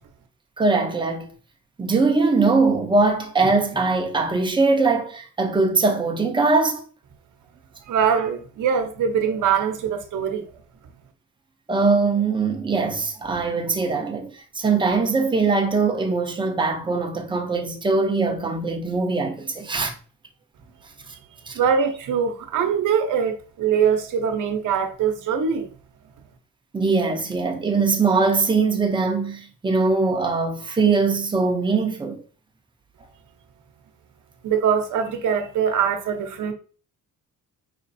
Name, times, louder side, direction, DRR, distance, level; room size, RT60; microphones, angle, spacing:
voice 1, 0.6-1.3 1.8-6.8 11.7-19.9 21.5-21.6 26.7-32.2, right 4 dB, 15° right, 0.5 m, -21 dB
voice 2, 7.9-10.4 21.5-25.7 34.4-36.5, right 7 dB, 65° right, 0.8 m, -22 dB
5.0 x 3.1 x 2.6 m
cardioid pair, 175°, 33 cm